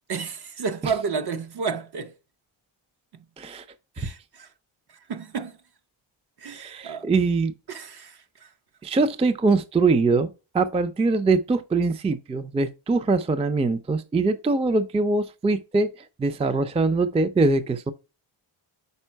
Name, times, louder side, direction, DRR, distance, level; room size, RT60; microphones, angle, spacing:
voice 1, 0.1-2.1 4.0-4.5 5.1-5.6 6.4-7.1 7.7-8.2, right 5 dB, 50° right, 0.7 m, -31 dB
voice 2, 6.5-7.5 8.8-10.3 10.5-15.9 16.2-17.9, right 3 dB, 15° right, 0.3 m, -23 dB
5.4 x 4.5 x 4.4 m
wide cardioid pair, 165°, 50 cm